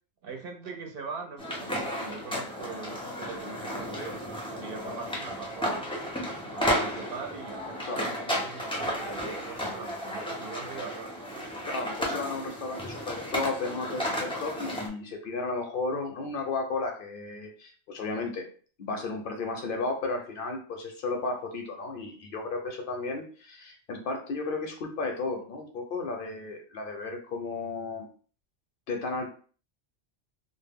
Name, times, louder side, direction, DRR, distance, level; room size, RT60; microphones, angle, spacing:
voice 1, 0.2-4.2 4.6-5.9 6.5-11.5, right 4 dB, 65° right, 3 dB, 0.7 m, -42 dB
sound 1, 1.4-14.9, equal, 10° left, 0.3 m, -33 dB
voice 2, 11.7-18.5 18.8-28.1 28.9-29.3, left 3 dB, 60° left, 3 dB, 0.7 m, -34 dB
2.0 x 2.0 x 3.4 m, 0.41 s
omnidirectional pair, 1.1 m